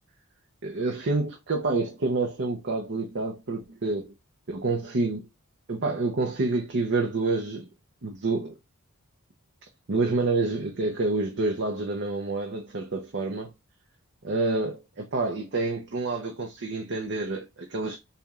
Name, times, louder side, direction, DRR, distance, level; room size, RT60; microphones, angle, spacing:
voice 1, 0.6-4.1 4.5-5.3 5.7-7.7 8.0-8.6 9.9-13.5 14.2-18.0, right 3 dB, 55° right, 0.8 m, -28 dB
4.2 x 3.4 x 3.6 m
head